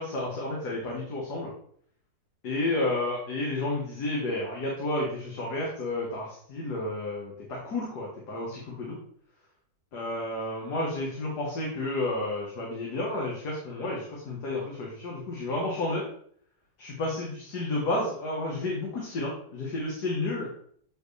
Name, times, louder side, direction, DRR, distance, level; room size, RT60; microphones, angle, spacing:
voice 1, 0.0-1.5 2.4-9.0 9.9-16.0 16.8-20.5, left 2 dB, 75° left, -3 dB, 1.9 m, -31 dB
7.6 x 4.7 x 3.2 m, 0.63 s
omnidirectional pair, 1.7 m